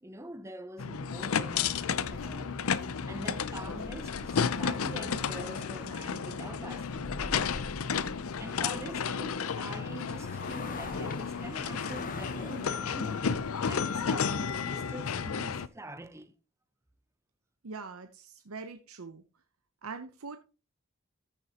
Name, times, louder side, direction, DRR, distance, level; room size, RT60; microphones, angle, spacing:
voice 1, 0.0-2.6 3.0-7.6 8.4-13.4 13.7-16.3, right 1 dB, 15° right, 0.8 m, -45 dB
sound 1, 0.8-15.7, left 6 dB, 85° left, 0.6 m, -32 dB
sound 2, 1.6-15.4, left 3 dB, 40° left, 1.0 m, -46 dB
voice 2, 17.6-19.2 19.8-20.4, right 4 dB, 90° right, 0.8 m, -42 dB
14.0 x 6.7 x 2.9 m
head